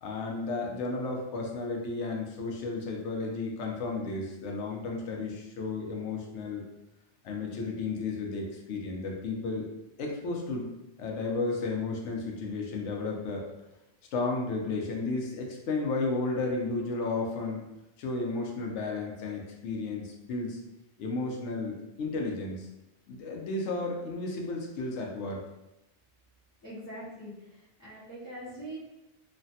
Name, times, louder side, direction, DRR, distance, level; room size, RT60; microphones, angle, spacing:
voice 1, 0.0-6.6 7.2-9.7 10.0-10.7 11.0-13.5 14.1-17.7 18.0-20.6 21.0-22.7 23.1-25.4, left 3 dB, 75° left, 0 dB, 0.9 m, -33 dB
voice 2, 26.6-27.3 27.8-28.8, right 1 dB, 20° left, -11 dB, 0.4 m, -42 dB
3.1 x 2.1 x 2.7 m, 0.95 s
omnidirectional pair, 1.2 m